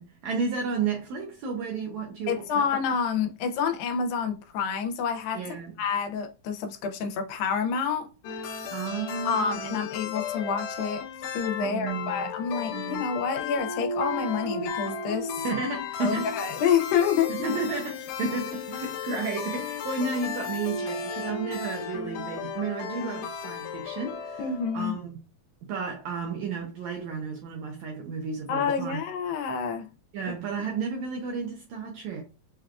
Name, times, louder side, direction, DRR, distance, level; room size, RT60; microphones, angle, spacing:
voice 1, 0.0-2.7 5.3-5.8 8.7-9.8 11.6-12.3 12.7-13.1 15.4-16.3 17.3-24.5 24.7-25.2 25.6-29.0 30.1-32.2, right 4 dB, 75° right, 1.7 m, -32 dB
voice 2, 2.3-5.4 5.8-8.1 9.3-11.1 11.3-15.5 16.0-17.3 24.4-25.0 28.5-29.9, left 6 dB, 90° left, 2.5 m, -28 dB
sound 1, 8.2-24.8, left 5 dB, 75° left, 1.8 m, -34 dB
6.0 x 2.3 x 2.4 m
omnidirectional pair, 4.0 m